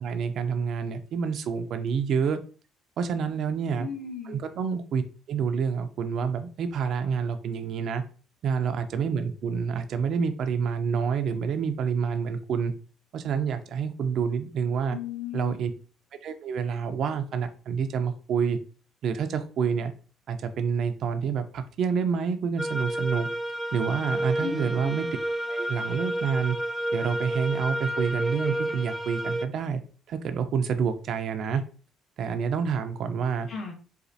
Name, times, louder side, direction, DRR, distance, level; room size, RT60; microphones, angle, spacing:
voice 1, 0.0-2.4 3.0-3.9 4.3-5.0 5.3-8.0 8.4-12.7 13.1-15.0 15.3-15.7 16.2-18.6 19.0-19.9 20.3-23.3 23.7-25.1 25.5-26.6 26.9-29.8 30.1-31.6 32.2-33.5, right 6 dB, 60° right, 8 dB, 0.5 m, -28 dB
voice 2, 3.8-4.4 14.9-15.5 24.4-25.0 33.5-33.7, left 6 dB, 45° left, 2 dB, 1.1 m, -36 dB
sound 1, 22.6-29.5, right 1 dB, 10° left, 0.3 m, -30 dB
4.2 x 2.3 x 2.6 m, 0.39 s
cardioid pair, 95°, 0 cm